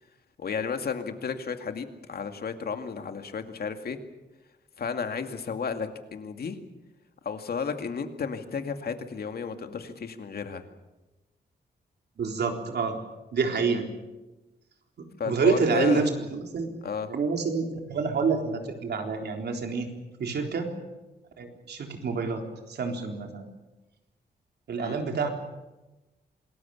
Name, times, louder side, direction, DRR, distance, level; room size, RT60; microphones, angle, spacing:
voice 1, 0.4-4.0 4.8-6.6 7.2-10.6 15.2-16.0 16.8-17.1 24.8-25.0, left 6 dB, 65° left, 6 dB, 2.3 m, -33 dB
voice 2, 12.2-13.0 13.3-13.9 15.0-16.7 17.1-19.9 20.2-20.7 21.4-22.4 22.7-23.5 24.7-25.3, right 4 dB, 80° right, 3 dB, 3.9 m, -27 dB
27.0 x 20.0 x 7.2 m, 1.1 s
wide cardioid pair, 110°, 17 cm